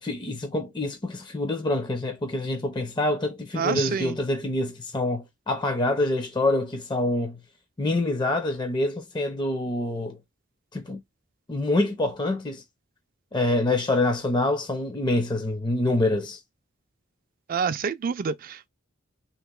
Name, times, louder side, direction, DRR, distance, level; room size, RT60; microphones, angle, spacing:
voice 1, 0.0-7.4 7.8-10.2 10.7-11.0 11.5-12.6 13.3-16.4, left 2 dB, 20° left, 0.5 m, -26 dB
voice 2, 3.6-4.2 17.5-18.7, right 6 dB, 45° right, 0.4 m, -27 dB
3.0 x 2.9 x 3.6 m
head